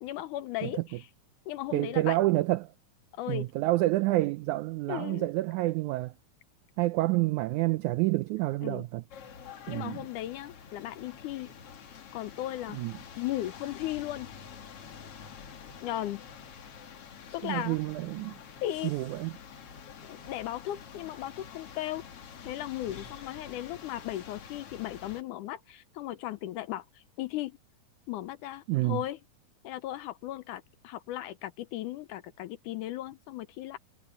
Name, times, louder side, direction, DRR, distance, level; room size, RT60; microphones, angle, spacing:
voice 1, 0.0-1.0 1.5-2.2 3.1-3.5 4.9-5.3 8.6-8.8 9.7-11.5 12.1-12.8 13.2-14.3 15.8-16.2 17.3-17.8 18.6-18.9 19.9-22.0 22.4-26.8 27.2-27.6 28.1-29.2 29.6-33.8, left 14 dB, 75° left, 2.0 m, -36 dB
voice 2, 1.7-2.7 3.3-6.1 6.8-9.0 9.7-10.0 12.7-12.9 17.4-18.4 18.8-19.3 28.7-29.0, right 18 dB, 85° right, 1.7 m, -28 dB
sound 1, 9.1-25.2, left 7 dB, 50° left, 2.4 m, -47 dB
omnidirectional pair, 4.0 m